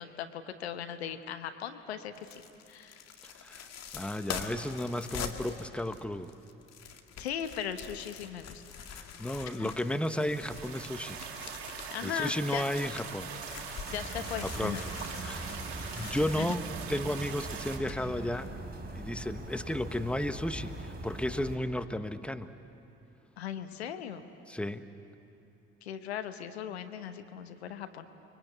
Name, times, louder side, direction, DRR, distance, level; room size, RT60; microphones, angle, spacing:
voice 1, 0.0-2.4 2.7-3.0 7.2-8.6 9.6-9.7 11.9-12.6 13.9-14.8 16.4-16.6 23.4-24.2 25.8-28.1, left 9 dB, 85° left, 9 dB, 1.0 m, -38 dB
sound 1, 2.2-12.1 12.5-18.5 18.9-19.0, left 7 dB, 55° left, 2.2 m, -45 dB
voice 2, 3.2-6.3 8.9-11.2 12.0-13.3 13.7-13.9 14.4-14.8 15.1-15.5 15.9-16.6 16.9-18.6 18.9-22.5 24.5-24.9, left 1 dB, 5° left, 10 dB, 1.3 m, -33 dB
sound 2, 9.4-17.8, right 6 dB, 85° right, 1.7 m, -42 dB
sound 3, 13.8-21.6, right 2 dB, 30° right, 4.5 m, -42 dB
30.0 x 23.0 x 8.4 m, 2.8 s
hypercardioid pair, 50°, 31 cm